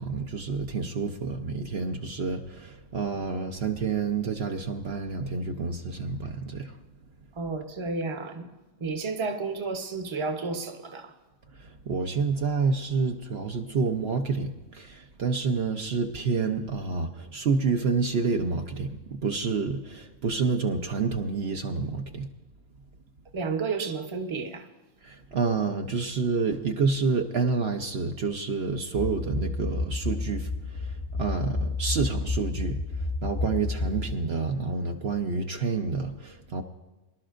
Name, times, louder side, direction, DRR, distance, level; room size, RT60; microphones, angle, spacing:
voice 1, 0.0-6.8 11.6-22.3 25.0-32.8 33.2-36.6, right 4 dB, 60° right, 1.0 m, -28 dB
voice 2, 7.3-8.5 8.8-11.1 23.3-24.7, right 4 dB, 25° right, 0.9 m, -31 dB
sound 1, 28.9-34.1, left 3 dB, 25° left, 0.7 m, -30 dB
24.0 x 12.0 x 2.5 m
omnidirectional pair, 1.3 m